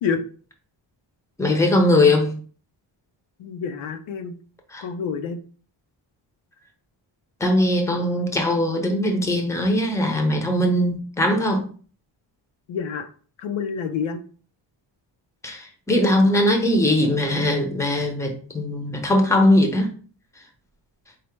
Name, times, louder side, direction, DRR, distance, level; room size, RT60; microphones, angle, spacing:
voice 1, 1.4-2.4 4.7-4.8 7.4-11.6 15.4-19.9, left 1 dB, 5° left, 0.6 m, -20 dB
voice 2, 3.4-4.3 4.8-5.4 12.7-13.1 13.4-14.2, left 6 dB, 80° left, 0.7 m, -28 dB
4.8 x 2.0 x 4.4 m
wide cardioid pair, 155°, 46 cm